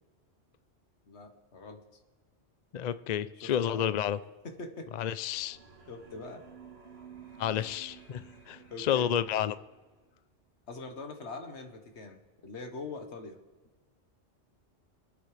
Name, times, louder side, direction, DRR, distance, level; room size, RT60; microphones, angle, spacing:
voice 1, 1.1-1.8 3.4-3.9 4.4-4.9 5.9-6.4 8.7-9.1 10.7-13.4, left 3 dB, 75° left, 5 dB, 1.6 m, -43 dB
voice 2, 2.7-4.2 5.0-5.6 7.4-9.6, left 9 dB, 55° left, 14 dB, 0.5 m, -30 dB
sound 1, 5.2-9.9, right 7 dB, 65° right, 1.6 m, -53 dB
27.0 x 9.1 x 3.3 m, 1.3 s
omnidirectional pair, 1.2 m